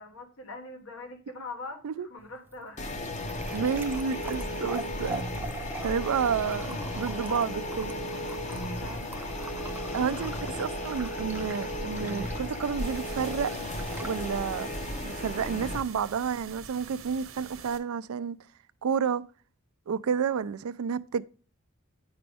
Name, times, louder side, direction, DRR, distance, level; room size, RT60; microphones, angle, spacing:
voice 1, 0.0-2.9 3.3-3.4 8.8-9.4 9.8-10.3, left 2 dB, 75° left, 1.2 m, -43 dB
sound 1, 2.2-17.2, right 2 dB, 10° right, 0.3 m, -45 dB
sound 2, 2.8-15.8, left 1 dB, 35° left, 0.7 m, -35 dB
voice 2, 3.5-5.2 5.8-7.9 9.9-13.5 14.0-14.7 15.0-18.4 18.8-19.2 19.9-21.2, right 6 dB, 90° right, 0.4 m, -30 dB
sound 3, 12.8-17.8, right 6 dB, 70° right, 1.0 m, -46 dB
9.6 x 5.1 x 3.4 m
head